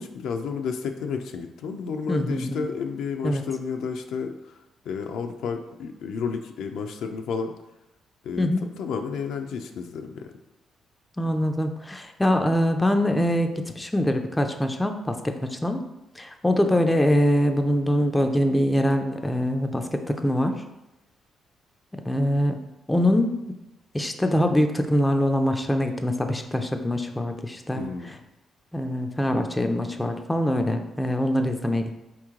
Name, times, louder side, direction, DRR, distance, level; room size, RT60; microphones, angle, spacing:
voice 1, 0.0-7.5 8.2-10.3 27.7-28.2, left 5 dB, 80° left, 5 dB, 0.4 m, -32 dB
voice 2, 2.1-2.6 3.2-3.4 8.4-8.7 11.2-15.8 16.2-20.5 22.1-22.6 22.9-23.3 23.9-27.8 28.7-32.0, left 1 dB, 10° left, 5 dB, 0.4 m, -23 dB
4.3 x 3.1 x 3.6 m, 0.95 s
cardioid pair, 90°, 0 cm